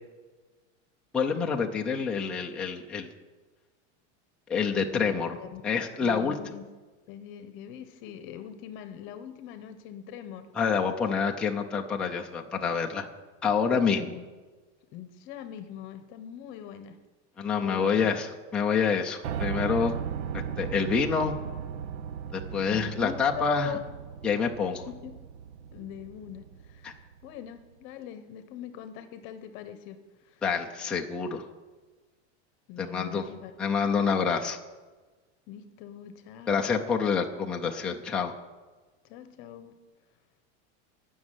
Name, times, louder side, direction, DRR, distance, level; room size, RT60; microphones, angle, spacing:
voice 1, 1.1-3.1 4.5-5.3 5.6-6.4 10.6-13.1 13.4-14.2 17.4-19.9 20.6-21.3 22.3-23.8 24.2-24.9 26.8-26.9 30.4-31.5 32.8-33.3 33.6-34.6 36.5-38.3, left 6 dB, 5° left, 0 dB, 0.3 m, -27 dB
voice 2, 4.9-5.6 6.0-6.6 7.1-10.5 13.8-14.2 14.9-17.0 17.6-18.1 20.8-20.9 22.5-23.9 24.6-25.1 25.7-30.4 32.7-33.5 35.5-36.8 39.0-39.7, left 10 dB, 35° left, 10 dB, 0.9 m, -42 dB
Piano, 19.2-27.2, right 8 dB, 80° right, 0.8 m, -37 dB
16.0 x 6.2 x 9.6 m, 1.3 s
supercardioid pair, 180°, 34 cm